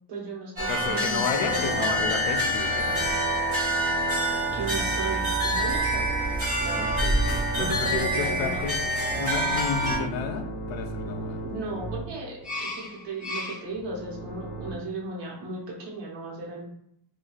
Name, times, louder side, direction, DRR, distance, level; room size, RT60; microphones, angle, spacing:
voice 1, 0.1-2.1 4.2-6.2 6.6-7.1 7.6-8.6 11.4-16.6, right 2 dB, 60° right, -3 dB, 1.0 m, -35 dB
sound 1, 0.6-10.0, right 1 dB, 30° right, 1.1 m, -26 dB
voice 2, 0.7-2.9 6.7-7.2 7.5-8.8 9.2-11.5, left 6 dB, 70° left, 5 dB, 0.6 m, -32 dB
sound 2, 1.4-14.7, right 1 dB, ahead, 0.5 m, -35 dB
3.1 x 2.2 x 2.4 m, 0.74 s
cardioid pair, 155°, 48 cm